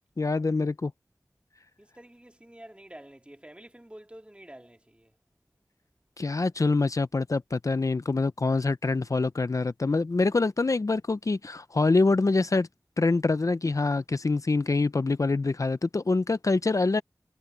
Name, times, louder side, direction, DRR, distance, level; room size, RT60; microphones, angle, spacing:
voice 1, 0.2-0.9 6.2-12.7 13.0-17.0, left 3 dB, 55° left, 0.6 m, -25 dB
voice 2, 1.8-5.1, right 1 dB, 15° right, 2.4 m, -48 dB
wide cardioid pair, 65°, 7 cm